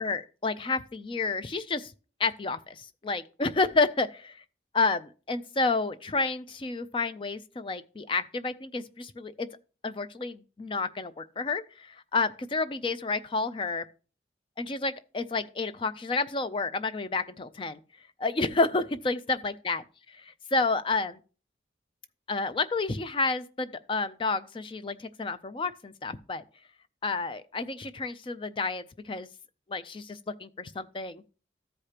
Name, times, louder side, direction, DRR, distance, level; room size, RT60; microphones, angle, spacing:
voice 1, 0.0-1.9 2.2-4.4 4.7-9.5 9.8-13.8 14.6-17.8 18.2-19.8 20.2-21.2 22.3-26.4 27.0-29.3 29.7-31.3, left 3 dB, 30° left, 0.4 m, -30 dB
14.0 x 4.9 x 2.9 m
head